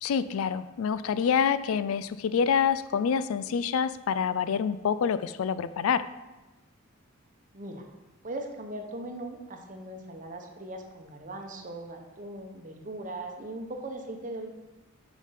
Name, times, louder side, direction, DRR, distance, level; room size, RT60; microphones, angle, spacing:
voice 1, 0.0-6.1, left 7 dB, 75° left, 15 dB, 0.3 m, -27 dB
voice 2, 7.5-7.8 8.2-14.5, right 1 dB, 35° right, 4 dB, 0.9 m, -39 dB
6.4 x 5.1 x 5.7 m, 1.1 s
head